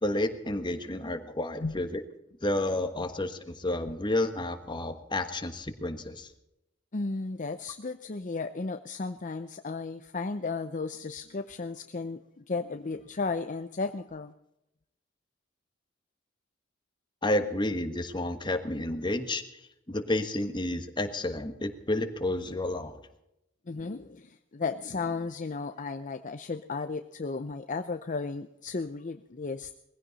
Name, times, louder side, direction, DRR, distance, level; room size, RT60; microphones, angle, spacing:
voice 1, 0.0-2.0 2.4-6.3 17.2-19.4 19.9-23.0, left 1 dB, 20° left, 7 dB, 1.4 m, -30 dB
voice 2, 6.9-14.3 23.7-29.7, left 4 dB, 40° left, 8 dB, 0.6 m, -34 dB
20.5 x 15.5 x 4.1 m, 0.86 s
head